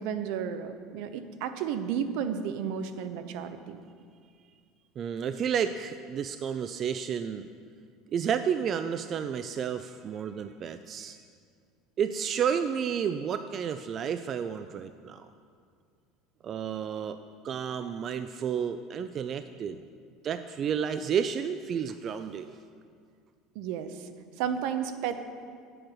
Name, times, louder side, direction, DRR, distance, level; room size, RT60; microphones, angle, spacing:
voice 1, 0.0-3.8 23.5-24.1 24.4-25.2, right 8 dB, 70° right, 9 dB, 0.7 m, -32 dB
voice 2, 5.0-7.5 8.1-11.2 12.0-15.3 16.4-17.2 17.4-19.8 20.2-22.6, right 7 dB, 35° right, 10 dB, 0.3 m, -31 dB
8.8 x 7.8 x 6.2 m, 2.1 s
cardioid pair, 145°, 0 cm